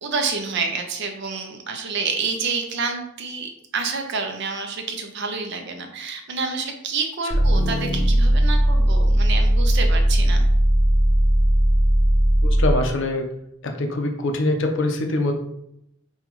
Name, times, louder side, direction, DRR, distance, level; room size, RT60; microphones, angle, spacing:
voice 1, 0.0-10.4, right 4 dB, 55° right, 4 dB, 0.5 m, -28 dB
sound 1, 7.3-12.9, right 1 dB, 15° left, 0.7 m, -18 dB
voice 2, 12.4-13.3 13.6-15.3, left 2 dB, 55° left, 4 dB, 0.5 m, -23 dB
5.5 x 2.3 x 3.0 m, 0.79 s
head